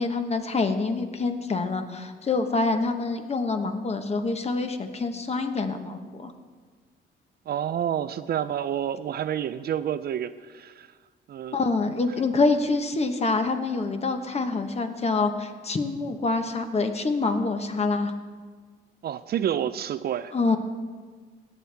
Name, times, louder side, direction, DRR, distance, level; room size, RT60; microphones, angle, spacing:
voice 1, 0.0-6.3 11.5-18.1 20.3-20.6, left 3 dB, 30° left, 7 dB, 1.0 m, -26 dB
voice 2, 7.5-10.9 11.3-11.6 19.0-20.3, right 10 dB, 55° right, 13 dB, 0.4 m, -29 dB
16.5 x 7.9 x 3.4 m, 1.5 s
cardioid pair, 90°, 20 cm